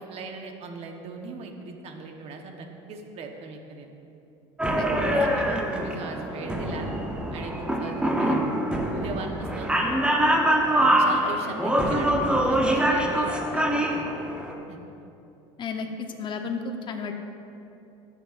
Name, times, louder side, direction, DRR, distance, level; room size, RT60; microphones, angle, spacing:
voice 1, 0.0-3.9 4.6-6.9 7.3-8.4 8.8-9.7 10.7-14.8, right 4 dB, 50° right, 3 dB, 1.1 m, -39 dB
sound 1, 4.6-14.5, right 1 dB, 5° right, 0.9 m, -24 dB
voice 2, 4.8-5.2 15.6-17.1, left 5 dB, 35° left, 4 dB, 0.9 m, -33 dB
15.5 x 6.6 x 2.5 m, 2.7 s
supercardioid pair, 105°, 14 cm